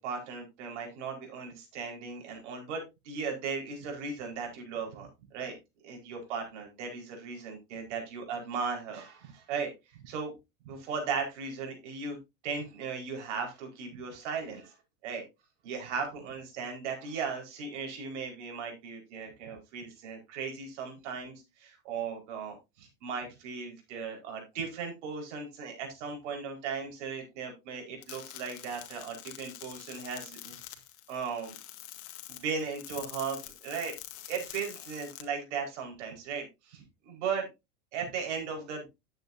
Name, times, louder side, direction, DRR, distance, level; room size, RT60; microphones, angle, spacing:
voice 1, 0.0-5.6 5.8-9.7 10.0-10.3 10.6-12.2 12.4-14.7 15.0-15.2 15.6-30.5 31.1-31.6 32.3-33.9 34.3-37.5 37.9-38.9, right 5 dB, 70° right, 2 dB, 4.9 m, -37 dB
sound 1, 28.0-35.2, left 14 dB, 65° left, 2.0 m, -46 dB
11.0 x 8.8 x 2.7 m, 0.23 s
supercardioid pair, 120°, 37 cm